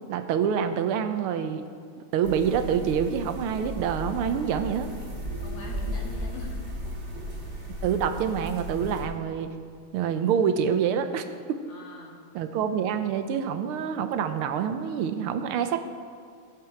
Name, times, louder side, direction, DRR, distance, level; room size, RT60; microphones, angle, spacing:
voice 1, 0.1-1.6 2.1-5.0 7.8-9.5 9.9-11.2 12.3-15.9, right 7 dB, 85° right, 8 dB, 1.6 m, -26 dB
sound 1, 2.2-9.0, equal, 30° right, 2.3 m, -35 dB
voice 2, 5.4-6.8 11.7-12.3, left 2 dB, 70° left, -2 dB, 2.5 m, -43 dB
14.5 x 7.7 x 4.4 m, 2.2 s
omnidirectional pair, 2.4 m